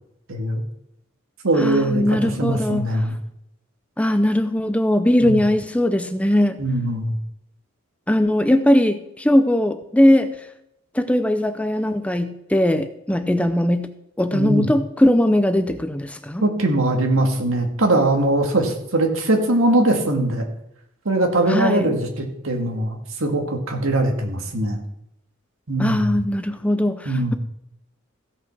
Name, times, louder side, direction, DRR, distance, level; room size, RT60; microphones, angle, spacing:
voice 1, 0.3-0.6 1.4-2.0 2.4-3.2 5.2-5.4 6.6-7.2 14.3-14.7 16.4-20.5 21.1-24.8 25.7-26.1 27.1-27.4, right 1 dB, 75° right, 3 dB, 2.0 m, -21 dB
voice 2, 1.6-2.9 4.0-6.6 8.1-10.5 10.9-16.4 21.5-21.9 25.8-27.3, left 1 dB, 5° left, 9 dB, 0.5 m, -20 dB
15.5 x 5.7 x 5.9 m, 0.79 s
head